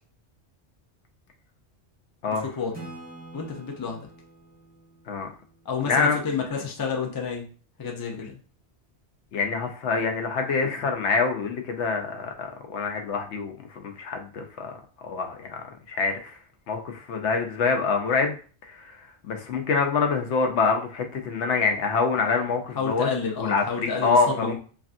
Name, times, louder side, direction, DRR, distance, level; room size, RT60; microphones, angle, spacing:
voice 1, 2.3-2.8 3.3-4.1 5.6-7.5 7.8-8.4 22.7-24.6, left 5 dB, 35° left, 1 dB, 0.3 m, -30 dB
Acoustic guitar / Strum, 2.7-6.3, right 2 dB, 10° right, 0.6 m, -46 dB
voice 2, 5.9-6.2 9.3-14.8 15.0-16.4 16.7-18.4 18.6-23.1 23.4-24.6, left 4 dB, 80° left, 4 dB, 0.9 m, -26 dB
3.2 x 2.6 x 2.5 m, 0.40 s
omnidirectional pair, 1.1 m